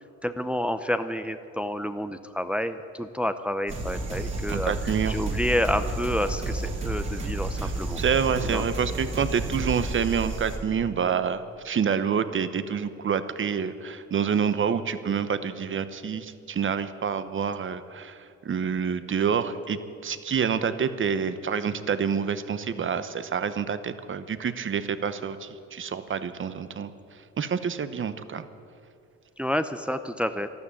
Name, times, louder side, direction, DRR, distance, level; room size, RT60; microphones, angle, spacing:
voice 1, 0.2-8.0 8.5-8.7 29.4-30.5, equal, 5° right, 10 dB, 0.6 m, -29 dB
sound 1, 3.7-9.9, right 1 dB, 20° right, 2.1 m, -33 dB
sound 2, 3.7-10.6, right 4 dB, 55° right, 2.8 m, -34 dB
voice 2, 4.5-5.2 7.2-7.3 7.6-18.2 18.4-26.9 27.4-28.4, right 7 dB, 40° right, 12 dB, 0.9 m, -27 dB
12.5 x 12.5 x 8.4 m, 2.5 s
cardioid pair, 90°, 30 cm